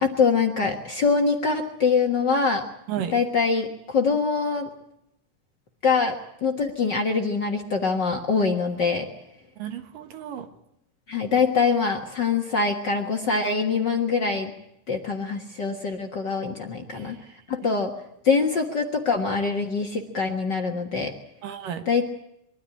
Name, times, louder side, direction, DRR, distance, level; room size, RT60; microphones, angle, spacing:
voice 1, 0.0-2.6 3.1-4.7 5.8-6.1 6.4-9.0 11.1-14.5 14.9-17.2 17.5-17.9 18.2-21.1 21.9-22.1, left 4 dB, 45° left, 3 dB, 1.6 m, -24 dB
voice 2, 9.6-10.5 16.9-17.3 21.4-21.8, right 9 dB, 80° right, 7 dB, 3.2 m, -33 dB
23.5 x 13.5 x 9.9 m, 0.80 s
omnidirectional pair, 3.8 m